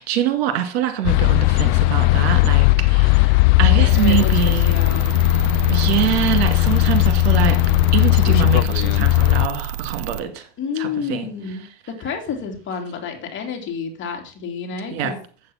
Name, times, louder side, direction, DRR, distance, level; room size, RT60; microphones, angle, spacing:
voice 1, 0.0-4.8 5.7-7.6 7.9-10.5 10.8-11.3 14.9-15.1, right 10 dB, 70° right, 2.3 m, -24 dB
sound 1, 1.0-9.5, left 22 dB, 60° left, 0.5 m, -17 dB
voice 2, 3.6-5.1 10.6-15.2, left 6 dB, 35° left, 2.8 m, -30 dB
sound 2, 3.9-10.2, right 13 dB, 50° right, 0.8 m, -31 dB
7.9 x 7.7 x 5.8 m
supercardioid pair, 120°, 32 cm